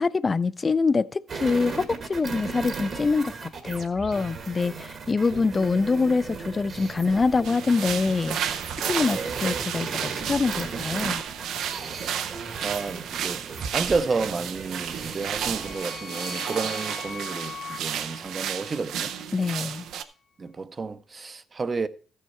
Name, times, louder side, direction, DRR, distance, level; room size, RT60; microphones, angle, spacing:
voice 1, 0.0-3.3 3.6-11.2 19.3-19.8, left 4 dB, 30° left, 0.4 m, -25 dB
sound 1, 1.3-15.7, right 5 dB, 50° right, 1.5 m, -36 dB
sound 2, 7.4-20.0, right 9 dB, 80° right, 0.6 m, -32 dB
voice 2, 12.6-13.4 13.7-19.2 20.4-21.9, right 4 dB, 35° right, 0.6 m, -31 dB
sound 3, 14.8-19.2, left 6 dB, 55° left, 0.9 m, -41 dB
13.5 x 6.4 x 4.2 m
cardioid pair, 90°, 0 cm